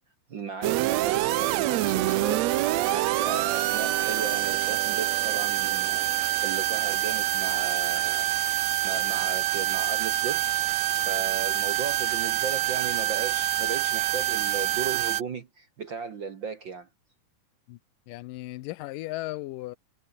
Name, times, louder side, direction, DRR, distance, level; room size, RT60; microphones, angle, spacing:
voice 1, 0.3-6.1 6.4-8.3 8.8-10.5 11.0-16.9, right 5 dB, 50° right, 1.4 m, -36 dB
sound 1, 0.6-15.2, right 15 dB, 75° right, 1.7 m, -26 dB
voice 2, 18.1-19.8, left 18 dB, 80° left, 2.3 m, -36 dB
omnidirectional pair, 3.8 m